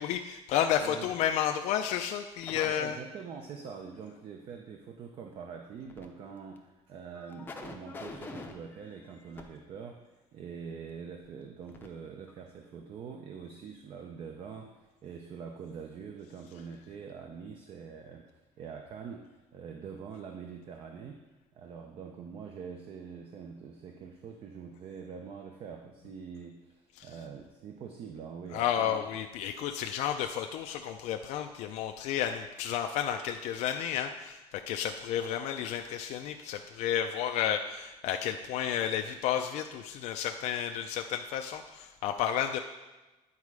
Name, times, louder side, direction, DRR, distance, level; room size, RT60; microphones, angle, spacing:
voice 1, 0.0-3.0 27.0-27.1 28.5-42.6, left 9 dB, 70° left, 4 dB, 0.5 m, -32 dB
voice 2, 0.8-1.1 2.6-21.2 21.5-29.1, right 6 dB, 45° right, 4 dB, 0.6 m, -44 dB
sound 1, 2.4-2.7 5.8-6.1 6.6-6.7 7.1-9.4 11.2-11.3 11.7-11.9 12.3-12.4, left 3 dB, 15° left, 0.6 m, -45 dB
9.7 x 4.2 x 4.8 m, 1.1 s
cardioid pair, 160°, 13 cm